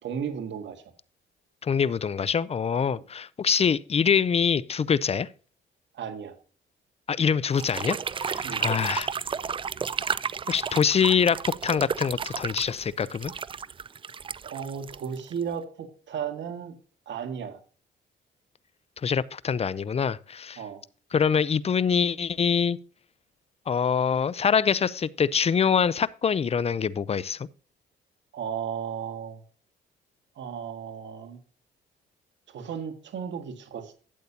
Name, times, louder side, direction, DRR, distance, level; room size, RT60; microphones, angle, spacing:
voice 1, 0.0-0.8 5.9-6.4 8.4-8.6 14.4-16.8 17.1-17.6 20.6-20.8 28.3-29.4 30.4-31.4 32.5-33.9, right 7 dB, 65° right, 1.8 m, -34 dB
voice 2, 1.6-5.3 7.1-9.1 10.5-11.4 11.6-13.3 19.0-20.6 21.1-22.8 23.7-27.5, left 7 dB, 30° left, 0.5 m, -24 dB
sound 1, 7.5-15.5, right 6 dB, 25° right, 0.4 m, -32 dB
12.0 x 8.3 x 2.8 m
cardioid pair, 90°, 20 cm